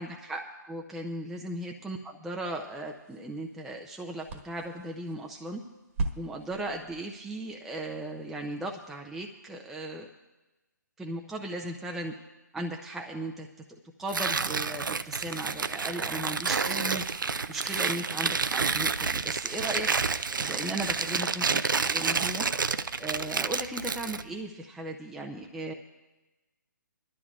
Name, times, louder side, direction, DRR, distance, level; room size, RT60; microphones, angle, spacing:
voice 1, 0.0-5.6 6.2-10.1 11.0-12.1 12.5-13.5 14.0-17.0 17.5-19.9 20.4-22.5 23.0-25.7, right 1 dB, 5° right, 0 dB, 0.5 m, -37 dB
sound 1, 2.4-9.0, right 3 dB, 40° right, 1.3 m, -41 dB
Tearing, 14.1-24.3, right 5 dB, 90° right, 0.5 m, -29 dB
23.5 x 12.5 x 2.4 m, 1.1 s
hypercardioid pair, 150°, 10 cm